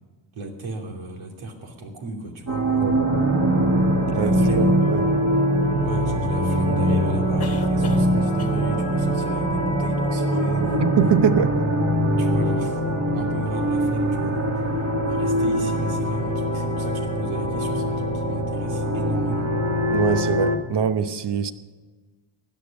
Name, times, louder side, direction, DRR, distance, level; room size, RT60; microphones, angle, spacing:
voice 1, 0.3-3.0 4.1-5.0 5.8-10.8 12.2-12.8 13.1-19.5, right 2 dB, 80° right, 2.9 m, -34 dB
sound 1, 2.5-20.6, equal, 35° right, 2.0 m, -22 dB
sound 2, 5.3-5.4 7.4-8.1 8.4-8.7 10.7-10.8 11.0-11.1, left 4 dB, 30° left, 1.3 m, -38 dB
voice 2, 10.8-11.7 19.9-21.5, right 8 dB, 60° right, 1.0 m, -22 dB
16.5 x 10.5 x 5.3 m
cardioid pair, 115°, 46 cm